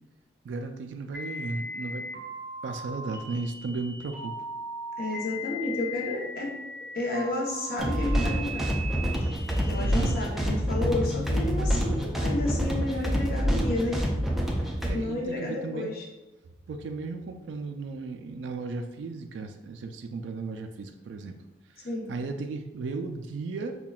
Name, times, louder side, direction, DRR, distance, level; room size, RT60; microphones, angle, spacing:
voice 1, 0.4-2.2 2.6-4.3 9.8-10.2 14.9-15.9 16.7-21.3 21.8-23.8, right 3 dB, 85° right, 6 dB, 0.3 m, -35 dB
sound 1, 1.1-10.1, equal, 20° right, 0.8 m, -38 dB
voice 2, 5.0-6.5 6.9-8.7 9.2-14.1 14.6-14.7 14.9-16.0 21.8-22.1, left 2 dB, 50° left, -2 dB, 0.8 m, -31 dB
sound 2, 7.8-14.9, equal, ahead, 0.3 m, -27 dB
sound 3, 10.8-14.5, left 4 dB, 80° left, 0.3 m, -39 dB
5.6 x 2.2 x 2.3 m, 1.1 s
head